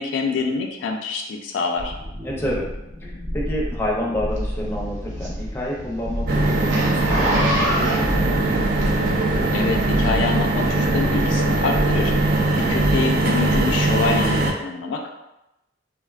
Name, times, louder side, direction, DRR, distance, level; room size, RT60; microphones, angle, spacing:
voice 1, 0.0-1.9 9.5-12.3 12.7-15.1, left 4 dB, 70° left, 3 dB, 0.3 m, -26 dB
sound 1, 1.8-13.0, equal, 35° right, 0.8 m, -30 dB
voice 2, 2.2-2.7 3.0-8.4, equal, 10° left, -4 dB, 0.5 m, -29 dB
Zipper (clothing), 4.4-9.3 9.9-10.0, equal, 75° right, 0.7 m, -26 dB
sound 2, 6.3-14.5, right 2 dB, 50° right, 0.3 m, -21 dB
3.3 x 2.2 x 2.3 m, 0.90 s
head